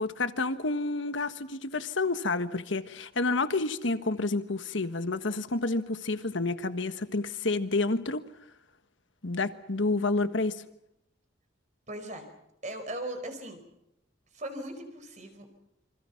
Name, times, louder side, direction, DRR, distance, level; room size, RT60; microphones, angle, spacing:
voice 1, 0.0-8.2 9.2-10.6, left 3 dB, 70° left, 10 dB, 1.4 m, -29 dB
voice 2, 11.9-12.3 12.6-13.6 14.3-15.5, right 1 dB, 35° right, 7 dB, 4.7 m, -38 dB
27.5 x 26.5 x 5.9 m, 0.82 s
head